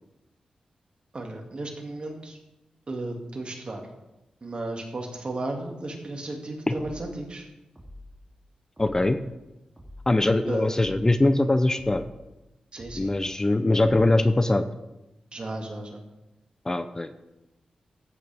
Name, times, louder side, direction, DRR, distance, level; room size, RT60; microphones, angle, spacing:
voice 1, 1.1-2.4 2.9-3.9 4.4-7.4 10.4-10.8 12.7-13.1 15.3-16.0, right 2 dB, 45° right, 1 dB, 2.3 m, -34 dB
sound 1, 6.7-7.1 7.8-8.2 8.8-9.2 9.8-10.2 10.7-11.1 11.8-12.2 12.8-13.2 13.8-14.2, left 1 dB, 20° right, 3.0 m, -45 dB
voice 2, 8.8-9.2 10.1-12.0 13.0-14.7 16.7-17.1, left 2 dB, 25° left, 10 dB, 0.7 m, -22 dB
14.5 x 8.3 x 3.5 m, 0.97 s
cardioid pair, 60°, 2 cm